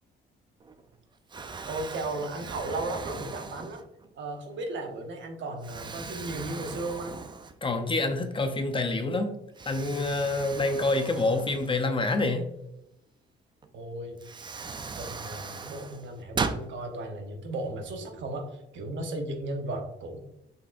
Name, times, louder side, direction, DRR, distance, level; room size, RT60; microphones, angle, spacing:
Explosion, 0.6-1.0 1.3-4.1 4.7-4.9 5.6-7.9 8.2-8.3 9.5-12.2 13.6-13.7 14.2-16.7, right 4 dB, 25° right, 0.4 m, -38 dB
voice 1, 1.7-3.8 4.2-7.2 13.7-14.2 15.0-20.2, right 2 dB, 70° right, 4 dB, 0.8 m, -35 dB
voice 2, 7.6-9.3 9.7-12.5, left 2 dB, 25° left, 6 dB, 0.6 m, -27 dB
5.3 x 3.4 x 2.5 m, 0.83 s
cardioid pair, 90°, 20 cm